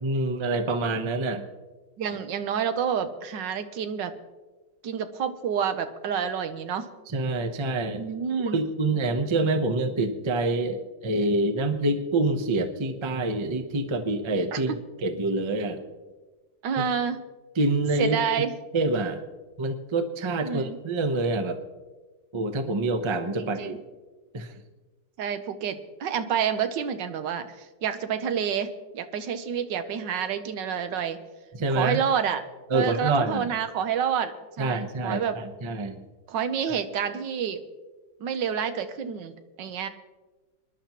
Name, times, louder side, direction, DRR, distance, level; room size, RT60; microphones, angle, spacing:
voice 1, 0.0-1.4 7.1-8.0 8.5-14.7 15.0-15.8 16.8-16.9 17.6-18.2 18.7-19.2 19.6-21.6 22.3-23.8 24.3-24.5 31.6-32.0 32.7-33.5 34.6-35.2 35.6-35.9, right 2 dB, 45° right, 8 dB, 0.3 m, -26 dB
voice 2, 2.0-4.1 4.8-6.9 8.0-8.6 14.5-14.8 16.6-17.2 18.0-18.5 20.4-20.8 23.4-23.8 25.2-28.7 28.9-31.2 31.7-32.4 32.7-35.4 36.3-37.6 38.2-39.9, right 7 dB, 70° right, 10 dB, 1.5 m, -28 dB
24.5 x 11.0 x 3.0 m, 1.3 s
omnidirectional pair, 2.1 m